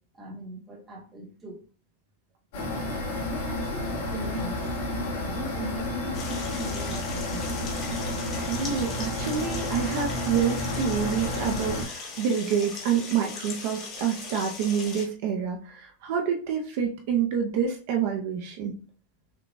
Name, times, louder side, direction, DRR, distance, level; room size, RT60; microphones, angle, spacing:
voice 1, 0.1-1.6 2.6-4.6 4.8-7.9, right 1 dB, 15° right, 0 dB, 0.9 m, -40 dB
sound 1, 2.5-11.8, left 1 dB, 50° left, 2.1 m, -31 dB
sound 2, 6.1-15.0, left 4 dB, 25° left, 1.0 m, -39 dB
voice 2, 8.5-18.7, right 7 dB, 45° right, 3 dB, 0.6 m, -27 dB
6.0 x 2.3 x 2.7 m, 0.40 s
supercardioid pair, 170°, 0 cm